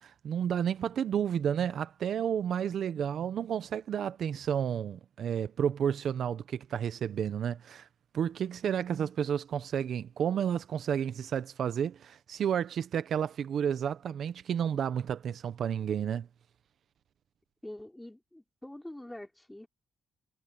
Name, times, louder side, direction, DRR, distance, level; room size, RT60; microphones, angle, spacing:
voice 1, 0.0-7.9 8.1-16.3, right 8 dB, 60° right, 0.8 m, -31 dB
voice 2, 17.6-19.7, left 1 dB, 5° left, 3.9 m, -45 dB
cardioid pair, 120°, 0 cm